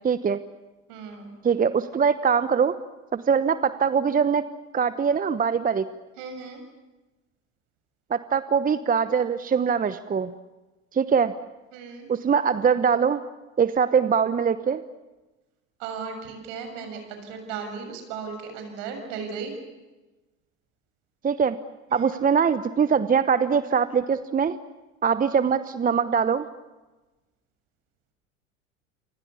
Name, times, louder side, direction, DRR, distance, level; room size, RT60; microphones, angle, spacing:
voice 1, 0.0-0.4 1.4-2.7 3.1-4.4 4.7-5.9 8.1-10.3 10.9-11.3 12.1-13.2 13.6-14.8 21.2-21.6 21.9-24.6 25.0-26.5, right 6 dB, 20° right, 13 dB, 1.0 m, -22 dB
voice 2, 0.9-1.4 6.2-6.6 11.7-12.1 15.8-19.5 21.9-22.2, right 5 dB, 65° right, 6 dB, 7.2 m, -36 dB
28.0 x 25.5 x 7.0 m, 1.1 s
hypercardioid pair, 80°, 39 cm